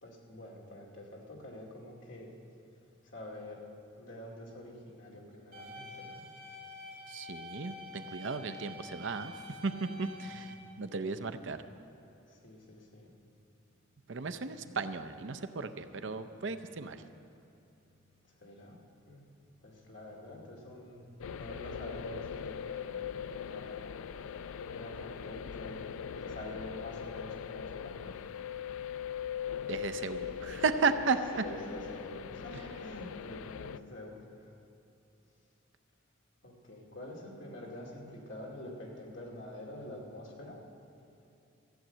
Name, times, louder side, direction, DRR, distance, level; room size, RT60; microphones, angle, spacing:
voice 1, 0.0-2.3 3.0-3.7 3.9-6.2 10.2-10.7 12.3-13.1 14.2-14.5 18.0-19.2 19.6-24.3 24.7-28.3 31.3-34.5 36.4-40.6, left 1 dB, 60° left, -2 dB, 2.3 m, -47 dB
sound 1, 5.5-10.5, left 2 dB, 45° right, 2.7 m, -47 dB
voice 2, 7.1-9.3 9.6-11.6 14.1-17.0 29.7-31.2, right 4 dB, 60° right, 10 dB, 0.6 m, -34 dB
sound 2, 21.2-33.8, left 8 dB, 80° left, 0.3 m, -41 dB
14.5 x 7.3 x 8.9 m, 2.7 s
head